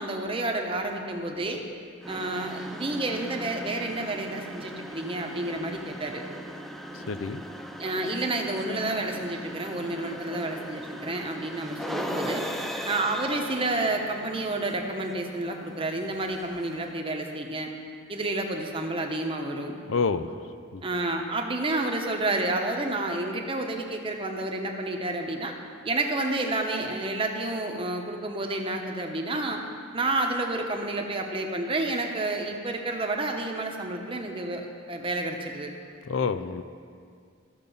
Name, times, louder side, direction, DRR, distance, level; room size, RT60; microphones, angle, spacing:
voice 1, 0.0-1.6 2.1-6.2 7.8-12.5 12.8-17.7 18.1-19.8 20.8-25.5 25.8-29.6 29.9-35.7, right 2 dB, 25° right, 2 dB, 0.9 m, -30 dB
sound 1, 2.0-16.9, equal, ahead, 0.4 m, -39 dB
voice 2, 6.9-7.4 19.9-20.3 20.7-20.8 36.1-36.6, left 5 dB, 70° left, 11 dB, 0.5 m, -28 dB
14.0 x 6.7 x 5.4 m, 2.2 s
head